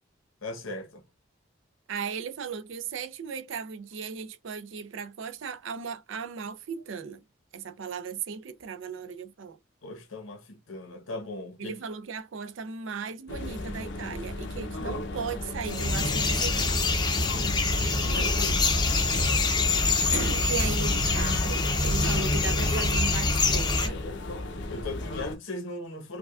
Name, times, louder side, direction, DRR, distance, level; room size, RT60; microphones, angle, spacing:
voice 1, 0.4-1.0 9.8-11.8 17.1-18.7 24.7-26.2, left 2 dB, 75° left, 1.0 m, -39 dB
voice 2, 1.9-7.2 7.5-9.6 11.6-16.7 20.1-24.0, right 6 dB, 65° right, 0.5 m, -36 dB
sound 1, 13.3-25.4, left 2 dB, 60° left, 0.7 m, -35 dB
sound 2, 15.7-23.9, left 3 dB, 20° left, 0.6 m, -25 dB
4.8 x 2.3 x 2.3 m
head